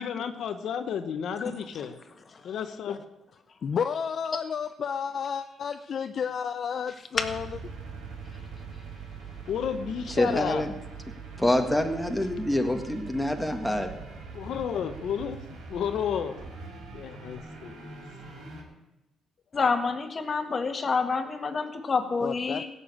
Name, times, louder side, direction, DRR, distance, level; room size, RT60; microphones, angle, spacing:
voice 1, 0.0-2.0 2.4-3.0 9.5-10.6 14.3-15.4 15.7-16.4 16.9-18.0, left 8 dB, 70° left, 8 dB, 1.0 m, -32 dB
voice 2, 3.6-7.6 22.2-22.6, left 7 dB, 55° left, 9 dB, 0.5 m, -31 dB
sound 1, 7.1-18.6, right 4 dB, 85° right, 4.4 m, -42 dB
voice 3, 10.1-10.7 11.4-13.9, left 1 dB, 5° left, 4 dB, 1.8 m, -26 dB
voice 4, 19.5-22.7, left 4 dB, 40° left, 7 dB, 1.7 m, -28 dB
16.0 x 7.0 x 8.7 m, 1.0 s
cardioid pair, 90°, 0 cm